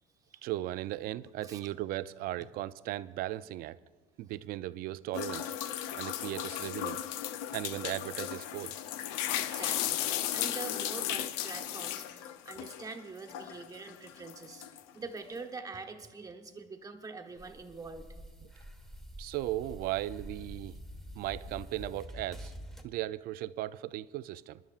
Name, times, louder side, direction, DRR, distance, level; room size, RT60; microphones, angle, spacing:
voice 1, 0.4-3.8 4.2-5.5 5.9-7.0 7.5-8.8 19.2-20.8 21.1-22.5 22.8-24.6, right 15 dB, 60° right, 16 dB, 0.4 m, -37 dB
sound 1, 5.1-13.0 13.3-14.9, left 11 dB, 85° left, 0.6 m, -35 dB
voice 2, 9.3-18.1, right 4 dB, 20° right, 4 dB, 1.1 m, -45 dB
sound 2, 17.4-22.8, equal, ahead, 1.0 m, -47 dB
27.0 x 11.5 x 2.4 m, 1.4 s
cardioid pair, 120°, 17 cm